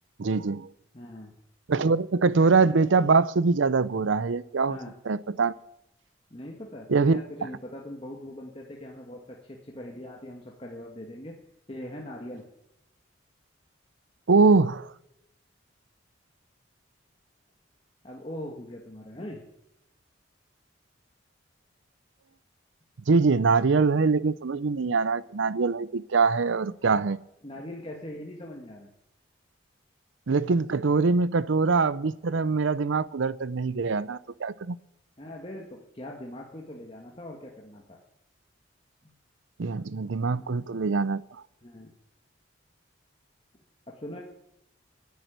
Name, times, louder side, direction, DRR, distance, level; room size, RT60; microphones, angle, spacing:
voice 1, 0.2-0.7 1.7-4.8 5.1-5.5 6.9-7.2 14.3-14.9 23.1-27.2 30.3-34.8 39.6-41.4, right 4 dB, 80° right, 0.6 m, -23 dB
voice 2, 0.9-1.3 4.7-4.9 6.3-11.3 11.7-12.4 18.0-19.4 27.4-28.9 35.2-38.0 39.0-39.1 40.4-40.6 41.6-41.9 43.9-44.2, left 1 dB, 30° left, 1.7 m, -41 dB
11.0 x 10.5 x 9.3 m
head